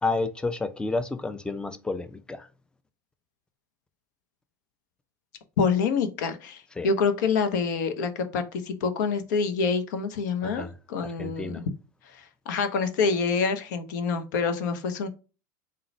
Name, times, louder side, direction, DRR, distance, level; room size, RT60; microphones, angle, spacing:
voice 1, 0.0-2.5 6.8-6.9 10.4-10.7 11.0-11.6, left 3 dB, 10° left, 0.4 m, -30 dB
voice 2, 5.6-11.6 12.1-15.1, left 5 dB, 70° left, 0.6 m, -27 dB
3.8 x 2.2 x 4.2 m
hypercardioid pair, 85°, 10 cm